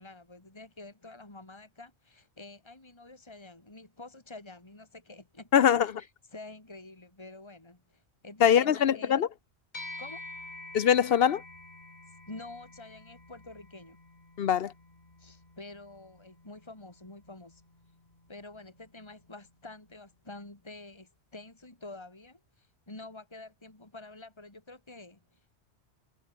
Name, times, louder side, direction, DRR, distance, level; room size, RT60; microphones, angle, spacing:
voice 1, 0.0-9.2 10.0-10.2 12.1-14.0 15.2-17.6 18.3-25.4, left 2 dB, 25° left, 2.8 m, -48 dB
voice 2, 5.5-5.9 8.4-9.3 10.7-11.4 14.4-14.7, left 9 dB, 65° left, 0.9 m, -22 dB
sound 1, 9.7-19.4, left 2 dB, 40° left, 3.4 m, -49 dB
omnidirectional pair, 1.1 m